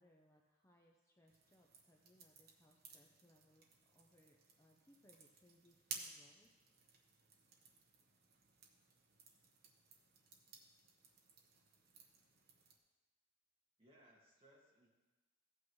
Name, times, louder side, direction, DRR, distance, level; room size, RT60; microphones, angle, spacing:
voice 1, 0.0-6.5, equal, 15° left, 0 dB, 0.6 m, -71 dB
sound 1, 1.3-12.8, right 5 dB, 50° right, 1.2 m, -57 dB
voice 2, 13.8-14.9, right 1 dB, 25° right, -4 dB, 2.0 m, -67 dB
15.5 x 8.6 x 3.1 m, 1.2 s
head